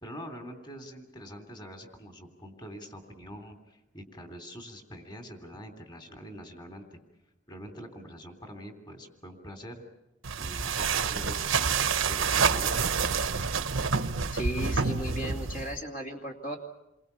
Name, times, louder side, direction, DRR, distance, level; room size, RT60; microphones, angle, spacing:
voice 1, 0.0-7.0 7.5-9.8 10.4-11.7 12.0-13.0, equal, 20° left, 5 dB, 3.0 m, -44 dB
sound 1, 10.2-15.8, right 5 dB, 80° right, 1.1 m, -28 dB
voice 2, 14.3-16.6, equal, 45° left, 1 dB, 2.7 m, -35 dB
29.0 x 23.0 x 6.9 m, 0.91 s
head